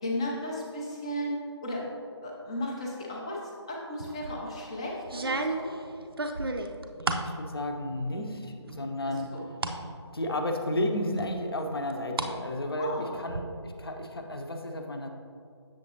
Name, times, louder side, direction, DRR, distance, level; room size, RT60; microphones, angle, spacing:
voice 1, 0.0-1.8 2.2-5.7 9.0-9.4 12.8-13.2, left 1 dB, 10° left, -3 dB, 0.4 m, -35 dB
sound 1, 4.0-4.4 5.1-7.3 7.8-8.3 8.7-9.8 10.2-10.3 11.2-12.3 12.6-13.4, right 2 dB, 55° right, 0.5 m, -33 dB
voice 2, 7.0-9.3 10.1-15.1, left 1 dB, 55° left, 3 dB, 0.8 m, -32 dB
7.9 x 6.5 x 2.8 m, 2.4 s
figure-of-eight pair, 155°, 15 cm